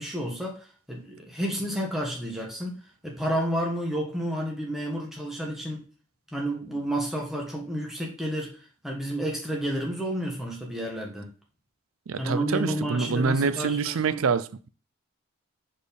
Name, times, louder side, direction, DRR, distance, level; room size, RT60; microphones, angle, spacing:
voice 1, 0.0-5.8 6.3-11.3 12.2-14.2, right 1 dB, ahead, 1.4 m, -31 dB
voice 2, 12.1-14.7, right 5 dB, 75° right, 0.5 m, -26 dB
5.0 x 4.4 x 5.2 m
head